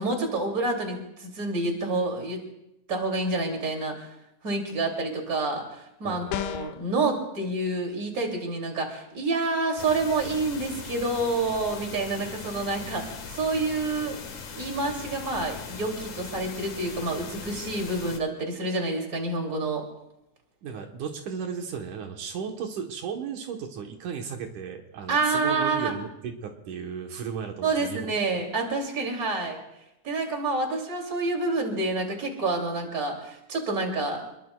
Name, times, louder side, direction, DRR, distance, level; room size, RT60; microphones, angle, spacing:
voice 1, 0.0-2.4 2.9-4.1 4.4-14.2 14.5-19.8 25.1-25.9 27.6-29.6 30.0-34.2, right 3 dB, 30° right, 2 dB, 3.0 m, -28 dB
voice 2, 6.0-6.4 20.6-28.1 28.3-28.4, right 6 dB, 80° right, 3 dB, 2.7 m, -35 dB
sound 1, 6.3-6.9, left 12 dB, 85° left, 2.2 m, -31 dB
sound 2, 9.8-18.2, left 5 dB, 65° left, 2.8 m, -40 dB
28.0 x 21.5 x 2.3 m, 0.87 s
omnidirectional pair, 3.5 m